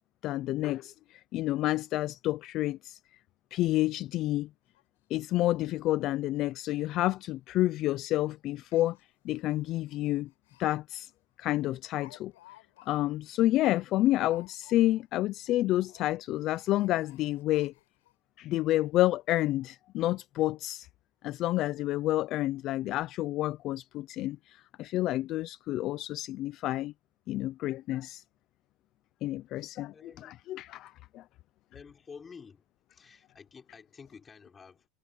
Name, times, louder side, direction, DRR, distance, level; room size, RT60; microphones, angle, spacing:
voice 1, 0.2-3.0 3.5-4.5 5.1-9.0 9.2-10.3 10.6-11.1 11.4-12.3 12.9-17.7 18.4-20.9 21.2-26.9 27.3-28.2 29.2-29.9 30.5-31.2, left 15 dB, 30° left, 0.3 m, -29 dB
Speech, 3.8-3.9 4.3-4.4 4.7-4.8 5.2-5.3 5.8-5.9 6.2-6.5 6.7-6.8 7.6-7.8 8.6-10.7 11.0-11.1 11.5-15.1 15.3-15.6 15.8-18.1 18.7-18.8 19.1-19.2, left 17 dB, 80° left, 4.0 m, -58 dB
voice 2, 29.9-30.4 31.7-32.6 32.9-34.9, left 5 dB, 15° left, 5.4 m, -50 dB
supercardioid pair, 180°, 0 cm